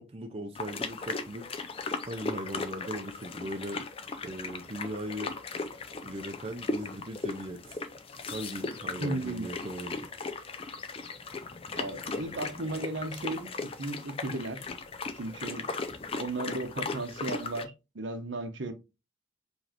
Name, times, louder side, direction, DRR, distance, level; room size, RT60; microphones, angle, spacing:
voice 1, 0.0-1.5 2.1-3.8 4.2-5.3 6.0-7.8 8.3-10.1, right 1 dB, 30° right, 0.5 m, -38 dB
sound 1, 0.6-17.7, left 3 dB, 25° left, 0.4 m, -37 dB
voice 2, 9.0-9.5 11.7-13.5 13.8-14.6 15.1-15.7 16.2-18.7, right 2 dB, 60° right, 0.8 m, -35 dB
4.9 x 3.2 x 2.8 m
head